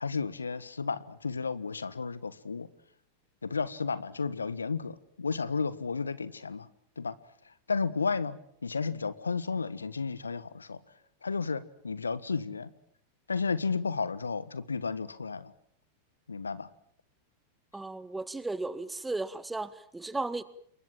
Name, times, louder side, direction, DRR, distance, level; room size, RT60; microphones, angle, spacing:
voice 1, 0.0-2.7 3.4-6.7 7.0-7.1 7.7-8.4 8.6-10.8 11.2-12.7 13.3-15.5 16.3-16.7, left 4 dB, 85° left, 1.5 m, -32 dB
voice 2, 17.7-20.4, right 2 dB, 10° right, 1.9 m, -35 dB
28.5 x 22.5 x 7.6 m
figure-of-eight pair, 95°, 0 cm